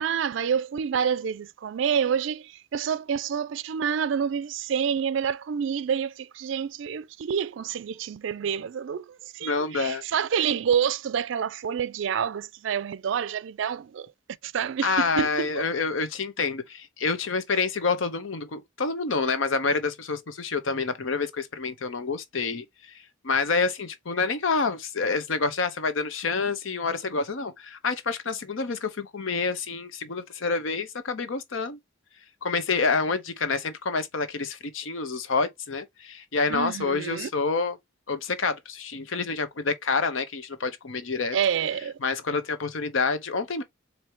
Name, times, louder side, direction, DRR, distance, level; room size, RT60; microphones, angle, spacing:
voice 1, 0.0-14.1 14.4-15.6 36.5-37.3 41.3-42.0, right 7 dB, 65° right, 0.3 m, -28 dB
voice 2, 9.4-10.0 14.8-22.9 23.2-31.8 32.4-37.8 38.1-41.4 42.0-43.6, left 4 dB, 75° left, 0.8 m, -28 dB
4.3 x 2.7 x 3.2 m
head